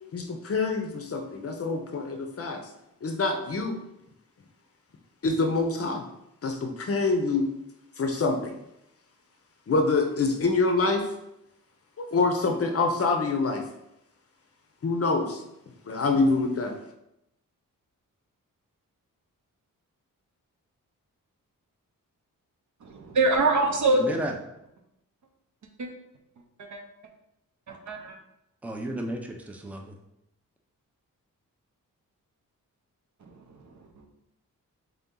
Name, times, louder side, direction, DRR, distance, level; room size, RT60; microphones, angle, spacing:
voice 1, 0.0-2.6 3.0-3.8 5.2-6.1 6.4-7.5 8.0-8.6 9.7-11.1 12.0-13.6 14.8-15.4 15.9-16.7, left 3 dB, 45° left, 4 dB, 0.6 m, -26 dB
voice 2, 22.8-24.1 25.8-25.9 26.6-26.8 27.7-28.2 33.2-34.1, right 2 dB, 60° right, 2 dB, 0.7 m, -25 dB
voice 3, 24.0-24.3 28.6-29.9, right 1 dB, 5° right, 2 dB, 0.4 m, -33 dB
3.7 x 2.8 x 3.7 m, 0.84 s
cardioid pair, 90°, 34 cm